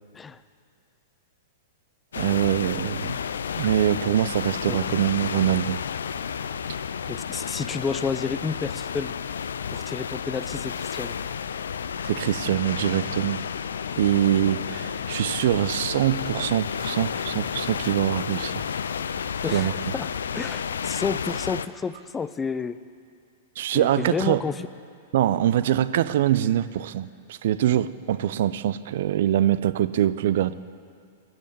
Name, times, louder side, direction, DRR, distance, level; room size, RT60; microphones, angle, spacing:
sound 1, 2.1-21.7, left 7 dB, 70° left, 0.4 m, -31 dB
voice 1, 2.2-3.1 3.6-5.8 12.0-13.4 13.9-18.6 19.5-19.7 23.6-24.4 25.1-30.5, right 12 dB, 60° right, 16 dB, 0.5 m, -24 dB
voice 2, 7.1-9.1 9.7-11.2 19.4-20.1 20.3-22.8 23.7-24.7, left 5 dB, 15° left, 14 dB, 0.6 m, -30 dB
20.0 x 8.5 x 7.6 m, 2.3 s
figure-of-eight pair, 100°, 0 cm